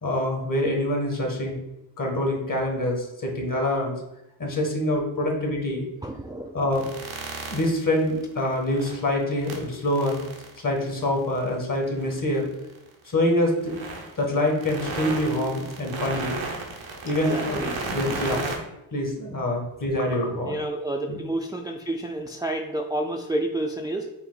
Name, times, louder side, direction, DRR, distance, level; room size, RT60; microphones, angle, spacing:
voice 1, 0.0-1.6 2.0-3.9 4.4-5.8 6.5-6.9 7.5-10.2 10.6-12.5 13.1-13.8 14.2-16.3 17.0-18.4 18.9-20.6 21.1-21.2, left 1 dB, 45° left, 0 dB, 1.5 m, -25 dB
voice 2, 6.0-6.5 17.3-17.8 20.5-24.0, right 1 dB, 10° right, 2 dB, 0.4 m, -29 dB
sound 1, 6.7-9.1 9.4-12.9 13.6-18.6, right 3 dB, 85° right, 0.9 m, -34 dB
5.7 x 2.1 x 3.9 m, 0.86 s
cardioid pair, 45°, 46 cm